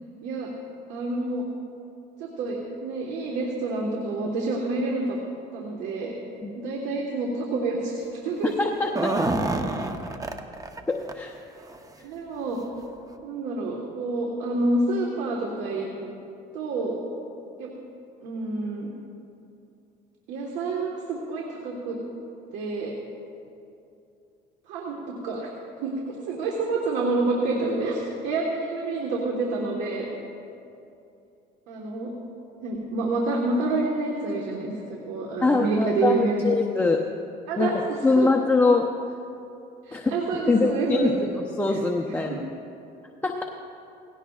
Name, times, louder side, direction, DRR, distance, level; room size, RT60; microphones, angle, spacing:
voice 1, 0.9-1.4 2.2-5.2 5.5-6.1 6.5-8.5 12.0-12.6 13.2-15.9 16.5-17.0 17.6-17.7 18.2-18.9 20.3-22.0 22.5-22.9 24.7-25.5 25.8-30.1 31.7-32.1 32.6-36.7 37.5-37.8 38.1-38.3 39.8-41.1 41.7-41.8 42.2-42.4, right 3 dB, 85° right, -1 dB, 1.5 m, -28 dB
voice 2, 8.6-9.2 10.9-11.3 35.4-37.0 37.6-37.7 38.0-38.9 39.9-41.3 41.6-42.4 43.2-43.4, left 3 dB, 10° left, 0 dB, 0.8 m, -23 dB
sound 1, 8.8-10.8 11.1-11.2 11.6-11.8 12.6-12.7 13.1-13.2, right 2 dB, 20° right, 0.8 m, -27 dB
18.5 x 16.5 x 2.4 m, 2.7 s
cardioid pair, 100°, 19 cm